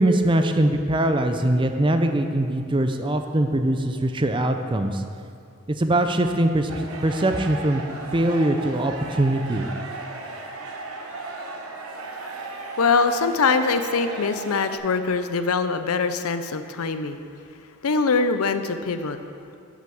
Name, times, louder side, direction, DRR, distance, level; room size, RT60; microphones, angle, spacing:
voice 1, 0.0-5.0 5.7-7.8 8.1-9.7, right 1 dB, 20° right, 6 dB, 0.5 m, -22 dB
sound 1, 6.7-14.8, right 3 dB, 80° right, 1.2 m, -36 dB
voice 2, 12.8-17.2 17.8-19.2, left 4 dB, 75° left, 10 dB, 0.6 m, -23 dB
8.0 x 7.8 x 7.1 m, 2.4 s
head